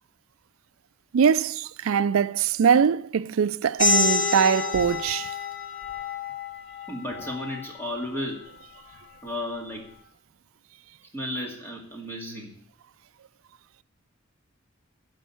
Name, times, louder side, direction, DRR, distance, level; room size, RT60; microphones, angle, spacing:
voice 1, 1.1-5.3, right 7 dB, 90° right, 0.4 m, -22 dB
sound 1, 3.8-9.0, left 3 dB, 40° left, 3.0 m, -28 dB
voice 2, 6.9-8.5 9.2-9.9 11.1-12.5, left 1 dB, 10° left, 2.3 m, -33 dB
11.0 x 5.3 x 8.5 m
head